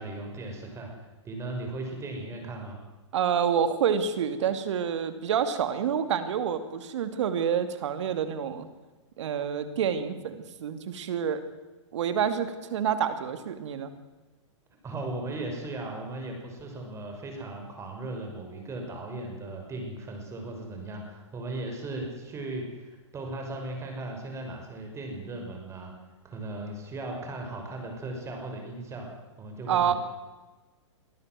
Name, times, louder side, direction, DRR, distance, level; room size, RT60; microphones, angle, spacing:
voice 1, 0.0-2.8 14.8-25.9 26.2-29.1 29.4-30.0, right 2 dB, 20° right, 2 dB, 6.1 m, -37 dB
voice 2, 3.1-8.7 9.2-11.4 11.9-13.9 29.7-29.9, right 8 dB, 70° right, 10 dB, 2.7 m, -28 dB
23.5 x 14.5 x 7.8 m, 1.2 s
hypercardioid pair, 135°, 16 cm